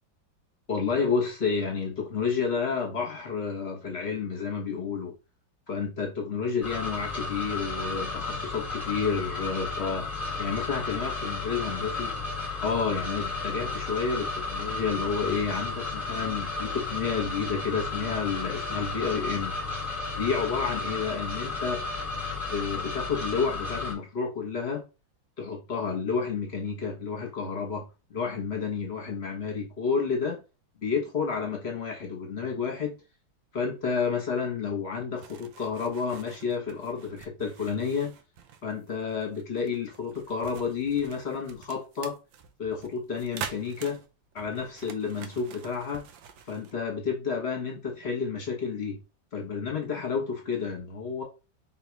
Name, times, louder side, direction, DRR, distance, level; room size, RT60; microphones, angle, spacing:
voice 1, 0.7-5.1 5.7-10.1 10.4-12.1 12.6-19.5 20.2-21.8 22.5-24.8 25.4-30.4 30.8-32.9 33.5-38.1 38.6-42.2 42.6-44.0 44.3-46.0 46.5-49.0 49.3-51.2, left 5 dB, 35° left, 1.5 m, -30 dB
sound 1, 6.6-23.9, left 3 dB, ahead, 1.3 m, -33 dB
sound 2, 35.2-46.7, right 7 dB, 75° right, 1.3 m, -45 dB
4.0 x 2.8 x 4.6 m
omnidirectional pair, 2.1 m